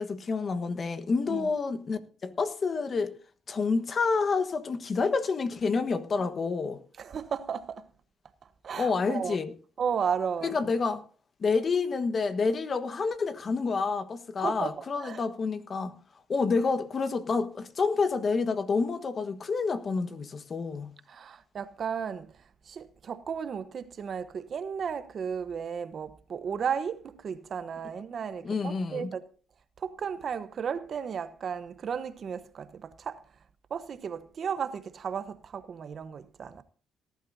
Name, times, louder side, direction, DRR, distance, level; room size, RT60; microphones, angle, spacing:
voice 1, 0.0-3.1 3.5-6.8 8.8-9.5 10.4-11.0 11.4-15.9 16.3-20.9 28.4-29.1, left 4 dB, 45° left, 1.3 m, -28 dB
voice 2, 7.0-7.8 8.6-9.4 9.8-10.6 14.4-15.2 21.1-22.3 22.6-29.2 29.8-33.2 33.7-36.6, right 7 dB, 55° right, 1.0 m, -34 dB
18.5 x 12.0 x 2.7 m
cardioid pair, 90°, 0 cm